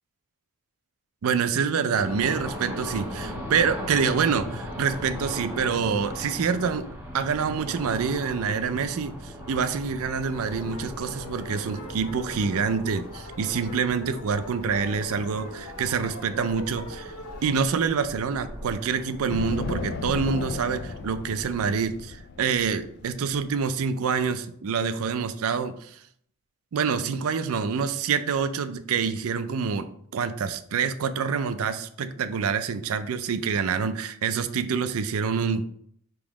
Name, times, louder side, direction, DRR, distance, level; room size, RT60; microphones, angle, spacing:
voice 1, 1.2-6.9 7.1-17.1 17.4-26.0 26.7-35.7, right 6 dB, 70° right, 11 dB, 0.4 m, -26 dB
sound 1, 2.0-21.6, equal, 10° right, 1.1 m, -39 dB
sound 2, 10.2-17.6, left 3 dB, 85° left, 0.9 m, -42 dB
sound 3, 19.3-24.2, left 4 dB, 50° left, 0.4 m, -35 dB
3.7 x 3.0 x 4.8 m, 0.65 s
head